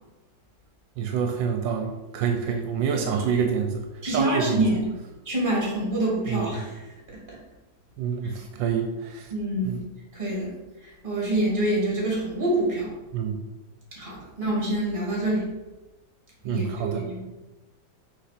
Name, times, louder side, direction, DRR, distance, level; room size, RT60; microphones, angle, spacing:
voice 1, 1.0-4.6 6.3-6.5 8.0-9.3 9.6-9.8 13.1-13.4 16.4-17.0, right 7 dB, 80° right, 4 dB, 1.3 m, -27 dB
voice 2, 2.9-3.4 4.0-4.9 5.3-6.8 9.3-9.8 10.1-10.5 11.0-12.9 14.0-15.4 16.4-17.3, right 1 dB, 25° right, -4 dB, 2.2 m, -26 dB
6.0 x 3.2 x 5.8 m, 1.1 s
omnidirectional pair, 2.1 m